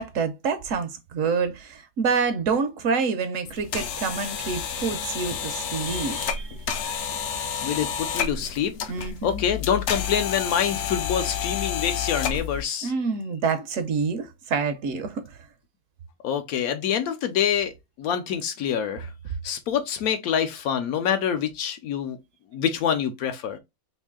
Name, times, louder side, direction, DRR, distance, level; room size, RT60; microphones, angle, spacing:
voice 1, 0.0-6.6 8.9-9.4 12.8-15.2, right 5 dB, 70° right, 0.9 m, -27 dB
sound 1, 3.5-12.6, left 8 dB, 65° left, 0.8 m, -30 dB
voice 2, 7.6-8.7 9.2-12.9 16.2-17.7 18.0-19.1 19.4-22.2 22.5-23.6, left 8 dB, 85° left, 1.1 m, -26 dB
3.1 x 2.7 x 3.5 m
omnidirectional pair, 1.5 m